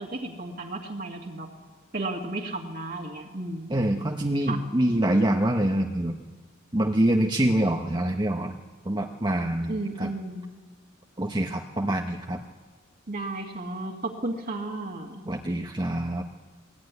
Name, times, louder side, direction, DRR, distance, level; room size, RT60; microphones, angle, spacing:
voice 1, 0.0-1.5 1.9-3.8 4.5-4.6 9.7-10.4 13.1-15.2, right 2 dB, 45° right, -1 dB, 2.1 m, -33 dB
voice 2, 3.7-6.2 6.7-8.6 8.8-10.1 11.2-12.4 15.2-16.2, right 1 dB, 20° right, 2 dB, 0.9 m, -25 dB
20.5 x 20.0 x 9.7 m, 1.4 s
head